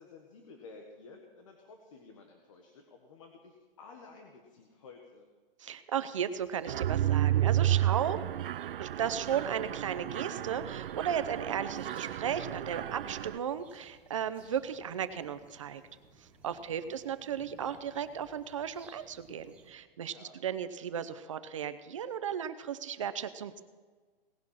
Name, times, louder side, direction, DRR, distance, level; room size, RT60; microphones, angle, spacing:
voice 1, 0.0-5.3 16.5-17.0 20.1-20.4, left 4 dB, 35° left, 3 dB, 1.5 m, -53 dB
voice 2, 5.6-8.2 8.8-15.8 16.2-23.6, right 8 dB, 35° right, 12 dB, 0.7 m, -35 dB
sound 1, 6.4-19.7, right 3 dB, 5° right, 1.7 m, -60 dB
Mechanisms, 6.7-13.4, right 13 dB, 65° right, 0.4 m, -31 dB
18.5 x 11.0 x 5.7 m, 1.4 s
hypercardioid pair, 175°, 29 cm